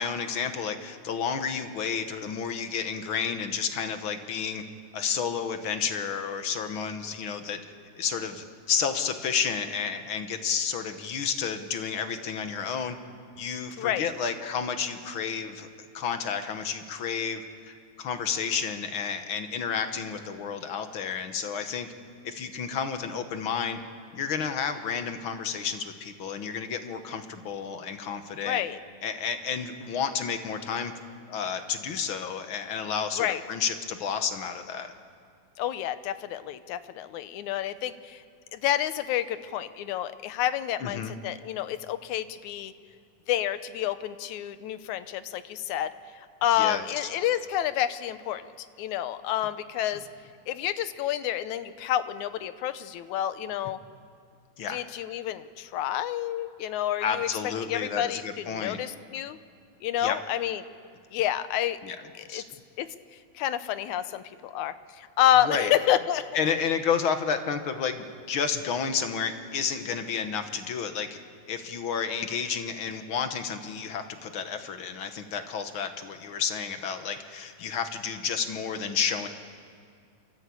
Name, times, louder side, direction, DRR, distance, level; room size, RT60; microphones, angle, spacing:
voice 1, 0.0-4.6 4.9-7.6 8.0-12.9 13.4-15.7 15.9-21.9 22.2-23.8 24.1-28.6 29.0-30.9 31.3-34.9 40.8-41.1 46.5-47.1 54.6-54.8 57.0-58.8 60.0-60.2 61.8-62.0 62.3-62.4 65.4-65.7 66.3-71.2 71.5-79.3, left 6 dB, 55° left, 8 dB, 1.6 m, -31 dB
voice 2, 28.4-28.8 33.2-33.4 35.6-38.2 38.5-42.7 43.3-45.9 46.4-50.1 50.5-53.8 54.7-57.3 57.7-59.4 59.8-60.6 61.1-61.8 62.3-62.4 62.8-62.9 63.4-66.4, left 12 dB, 80° left, 12 dB, 2.2 m, -29 dB
29.0 x 14.0 x 8.5 m, 2.2 s
omnidirectional pair, 3.5 m